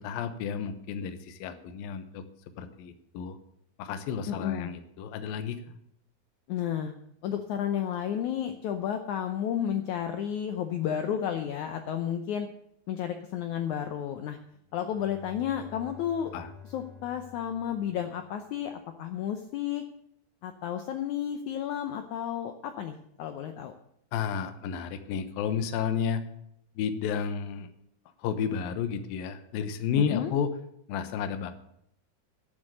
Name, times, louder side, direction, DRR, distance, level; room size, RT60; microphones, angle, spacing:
voice 1, 0.0-2.3 2.6-3.4 3.8-5.6 16.3-16.5 24.1-26.2 26.8-27.7 28.2-30.5 30.9-31.5, left 7 dB, 75° left, 10 dB, 2.6 m, -31 dB
voice 2, 4.3-4.7 6.5-6.9 7.2-12.5 12.9-14.4 14.7-16.3 16.7-19.8 20.4-23.7 30.0-30.3, left 9 dB, 90° left, 7 dB, 1.6 m, -32 dB
Bowed string instrument, 14.5-18.6, left 6 dB, 55° right, 3.5 m, -50 dB
12.0 x 7.2 x 9.1 m, 0.73 s
omnidirectional pair, 4.5 m